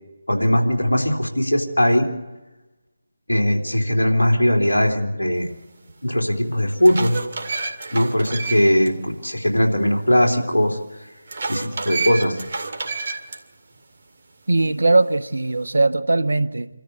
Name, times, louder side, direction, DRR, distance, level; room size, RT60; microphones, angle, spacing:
voice 1, 0.3-2.1 3.3-5.5 6.0-7.2 7.9-10.8 11.5-12.4, equal, 80° left, 3.4 m, -19 dB
sound 1, 5.9-6.0 6.5-8.9 9.3-9.4 11.3-13.4, right 4 dB, 50° right, 2.1 m, -29 dB
voice 2, 14.5-16.7, right 2 dB, 65° right, 1.2 m, -19 dB
27.0 x 13.5 x 8.3 m
figure-of-eight pair, 155°, 0 cm